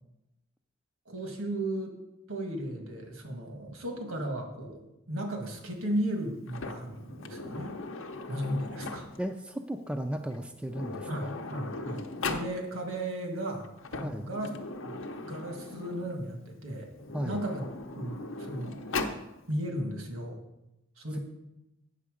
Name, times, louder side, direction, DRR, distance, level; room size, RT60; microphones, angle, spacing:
voice 1, 1.0-2.0 2.3-7.8 8.3-9.1 11.1-14.5 14.8-16.9 17.2-17.6 18.0-18.8 19.5-20.4 21.0-21.2, right 1 dB, 80° right, 4 dB, 1.5 m, -35 dB
Sliding door, 6.5-9.3 10.3-10.4 10.7-12.5 13.6-16.2 16.9-19.2, left 3 dB, 65° left, 0.7 m, -38 dB
voice 2, 9.2-11.3 14.0-14.3 17.1-17.4, right 1 dB, 5° right, 5 dB, 0.3 m, -35 dB
8.4 x 6.6 x 4.9 m, 0.92 s
head